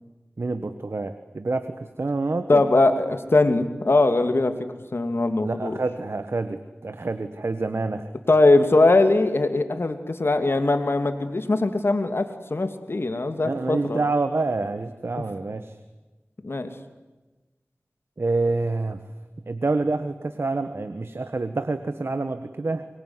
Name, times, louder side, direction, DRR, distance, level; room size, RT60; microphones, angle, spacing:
voice 1, 0.4-2.6 5.4-8.1 13.4-15.8 18.2-19.0 19.5-22.9, right 3 dB, 70° right, 9 dB, 1.5 m, -27 dB
voice 2, 2.5-4.5 4.9-5.8 8.3-14.0 16.4-16.7, left 2 dB, 65° left, 8 dB, 2.8 m, -21 dB
24.0 x 23.5 x 9.8 m, 1.2 s
wide cardioid pair, 45°, 4 cm